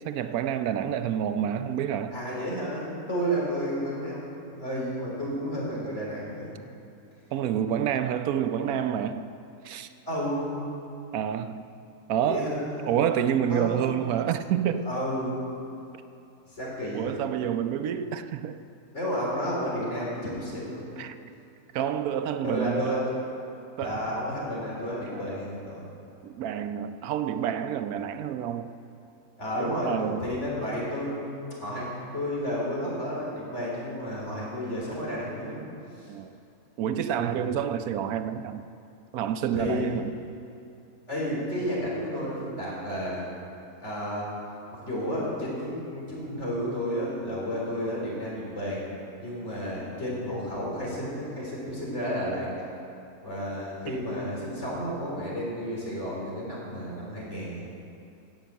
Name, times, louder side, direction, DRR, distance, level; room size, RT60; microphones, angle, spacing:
voice 1, 0.0-2.1 7.3-9.3 9.6-9.9 11.1-11.6 12.1-12.5 12.9-14.9 16.9-18.6 21.0-21.1 21.7-22.9 23.8-24.1 25.1-25.2 26.2-28.7 29.5-30.3 36.1-36.3 36.8-38.6 39.1-40.1, right 9 dB, 85° right, 10 dB, 1.1 m, -28 dB
voice 2, 2.1-6.6 10.1-10.6 12.3-13.1 13.5-13.7 14.8-15.4 16.5-17.1 18.9-20.9 22.4-23.0 23.8-25.9 29.4-35.6 36.0-36.1 37.2-37.5 39.5-39.8 41.1-43.2 43.8-44.3 44.8-48.9 49.2-52.5 53.2-57.7, equal, 50° left, -5 dB, 4.0 m, -32 dB
16.0 x 6.2 x 8.1 m, 2.7 s
omnidirectional pair, 1.5 m